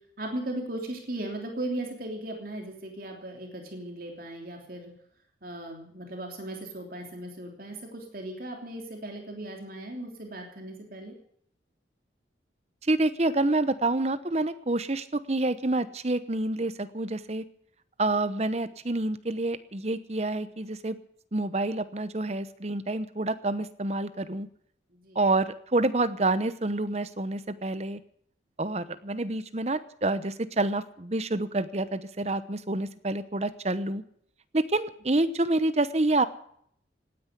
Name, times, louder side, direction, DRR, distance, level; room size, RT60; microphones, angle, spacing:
voice 1, 0.2-4.9 5.4-11.1 24.9-25.2, right 1 dB, 50° right, 2 dB, 3.2 m, -37 dB
voice 2, 12.9-17.4 18.0-21.0 21.3-24.5 25.1-28.0 28.6-34.0 34.5-36.3, right 2 dB, 35° right, 13 dB, 0.9 m, -28 dB
17.5 x 9.8 x 8.3 m, 0.67 s
head